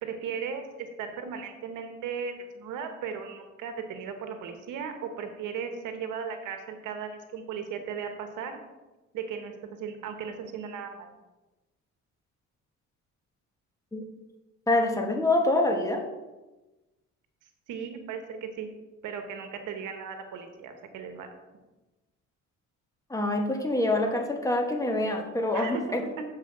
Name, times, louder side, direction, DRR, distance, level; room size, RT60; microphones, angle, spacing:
voice 1, 0.0-8.6 9.1-9.5 9.8-11.1 17.7-18.7 19.0-21.3 25.5-25.8 26.2-26.3, right 6 dB, 90° right, 6 dB, 1.1 m, -36 dB
voice 2, 14.7-16.0 23.1-26.0, left 2 dB, 10° left, 2 dB, 1.4 m, -26 dB
7.5 x 4.6 x 6.4 m, 1.1 s
cardioid pair, 90°, 30 cm